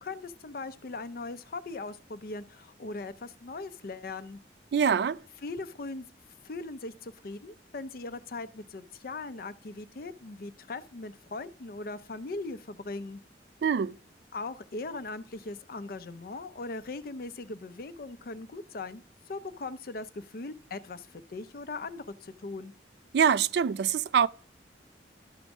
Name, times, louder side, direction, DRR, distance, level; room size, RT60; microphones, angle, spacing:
voice 1, 0.0-4.4 5.4-6.1 6.4-13.2 14.3-19.0 19.3-22.7, left 3 dB, 55° left, 0.5 m, -39 dB
voice 2, 4.7-5.2 13.6-13.9 23.1-24.3, right 7 dB, 65° right, 0.3 m, -24 dB
12.0 x 5.1 x 3.5 m
head